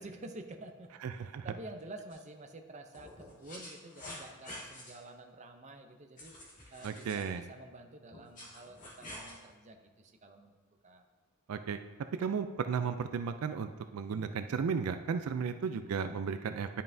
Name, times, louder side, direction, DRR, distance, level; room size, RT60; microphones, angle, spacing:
voice 1, 0.0-6.3 6.7-10.5 10.8-11.0, right 2 dB, 35° right, 5 dB, 0.6 m, -49 dB
voice 2, 1.0-1.5 6.8-7.4 11.5-11.8 12.2-16.7, right 6 dB, 80° right, 9 dB, 0.4 m, -34 dB
sound 1, 2.1-2.2 2.9-4.9 6.2-7.3 8.1-9.4, left 1 dB, 35° left, 1.9 m, -48 dB
10.5 x 5.5 x 2.7 m, 1.3 s
head